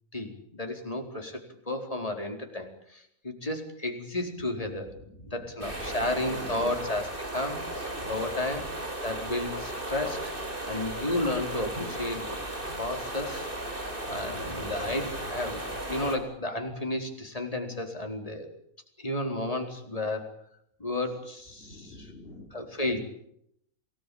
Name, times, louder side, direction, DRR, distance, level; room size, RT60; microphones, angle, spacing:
voice 1, 0.1-4.9 5.3-8.7 9.0-10.2 10.7-12.4 12.8-13.5 14.1-18.5 19.0-20.3 20.8-22.1 22.5-23.0, left 1 dB, 25° left, 4 dB, 4.5 m, -32 dB
voice 2, 4.7-5.2 5.9-6.8 8.0-8.1 14.1-15.1 21.6-22.5, left 1 dB, 40° left, 4 dB, 3.7 m, -46 dB
sound 1, 5.6-16.2, right 1 dB, 35° right, 5.7 m, -35 dB
28.5 x 19.5 x 8.8 m, 0.72 s
omnidirectional pair, 1.6 m